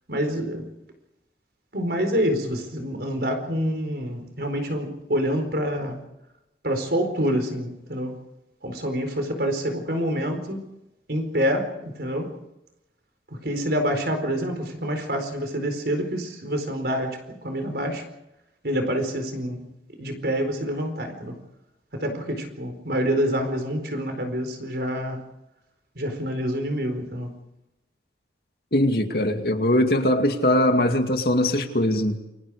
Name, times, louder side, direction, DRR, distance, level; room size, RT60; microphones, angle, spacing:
voice 1, 0.1-0.7 1.7-6.0 6.6-8.2 8.6-10.6 11.1-12.3 13.4-18.0 18.6-19.6 20.0-21.4 21.9-25.2 25.9-27.3, equal, 65° right, 6 dB, 4.5 m, -27 dB
voice 2, 28.7-32.2, left 1 dB, 60° left, 5 dB, 2.3 m, -21 dB
28.5 x 24.5 x 5.0 m, 0.92 s
head